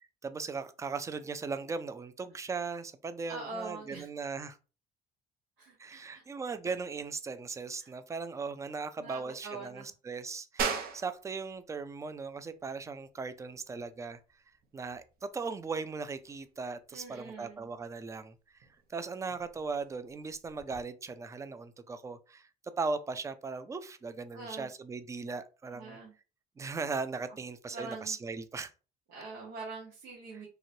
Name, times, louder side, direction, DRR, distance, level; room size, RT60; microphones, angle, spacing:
voice 1, 0.2-4.6 5.8-14.2 14.7-22.5 22.8-26.0 26.6-28.7, right 4 dB, 20° right, 0.3 m, -38 dB
voice 2, 3.3-4.1 5.6-6.2 7.8-7.9 9.0-9.9 16.9-17.7 24.3-24.7 25.7-26.1 27.7-28.2 29.1-30.5, right 3 dB, 90° right, 1.1 m, -43 dB
sound 1, 10.6-20.8, right 5 dB, 60° right, 0.7 m, -43 dB
3.0 x 2.8 x 2.6 m
cardioid pair, 110°, 17 cm